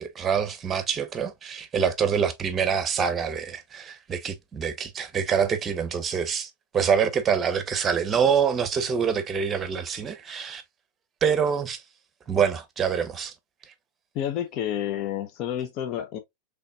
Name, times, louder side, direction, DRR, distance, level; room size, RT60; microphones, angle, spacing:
voice 1, 0.0-10.6 11.2-11.8 12.3-13.3, right 7 dB, 25° right, 0.8 m, -25 dB
voice 2, 14.1-16.2, left 10 dB, 50° left, 0.5 m, -29 dB
3.9 x 3.4 x 2.3 m
hypercardioid pair, 105°, 0 cm